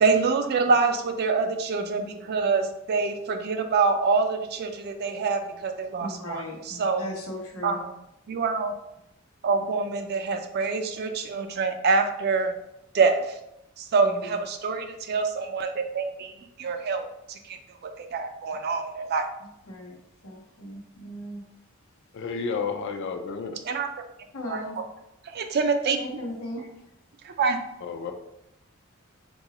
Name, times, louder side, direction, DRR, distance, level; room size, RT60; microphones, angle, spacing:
voice 1, 0.0-7.1 7.6-7.9 8.3-8.7 9.4-12.5 12.9-13.4 13.8-17.6 17.8-19.3 23.6-23.9 24.5-24.8 25.2-26.2 27.2-27.6, right 4 dB, 50° right, 7 dB, 0.4 m, -26 dB
voice 2, 6.0-7.8 14.0-14.3 19.7-20.0 20.2-21.4 24.3-24.8 26.0-26.7, left 1 dB, 90° left, -1 dB, 0.9 m, -37 dB
voice 3, 22.1-23.6 27.8-28.1, left 5 dB, 60° left, 6 dB, 0.4 m, -31 dB
3.9 x 2.3 x 2.8 m, 0.82 s
head